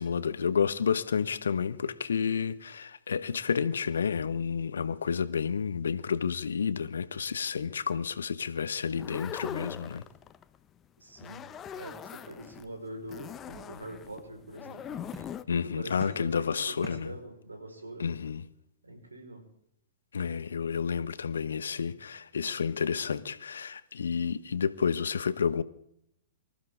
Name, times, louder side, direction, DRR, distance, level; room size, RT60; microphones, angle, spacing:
voice 1, 0.0-10.0 15.5-17.1 18.0-18.4 20.1-25.6, left 6 dB, 75° left, 1.0 m, -30 dB
sound 1, 8.9-10.6 11.1-12.7 13.1-15.4, left 9 dB, 25° left, 0.8 m, -41 dB
voice 2, 11.0-11.4 11.7-15.1 15.6-18.1 18.8-19.4, right 1 dB, 90° right, 5.1 m, -44 dB
sound 2, 11.7-13.1 13.4-14.2 15.1-15.6 16.0-17.6, right 1 dB, 15° right, 8.0 m, -49 dB
25.0 x 14.5 x 3.8 m
figure-of-eight pair, 110°, 0 cm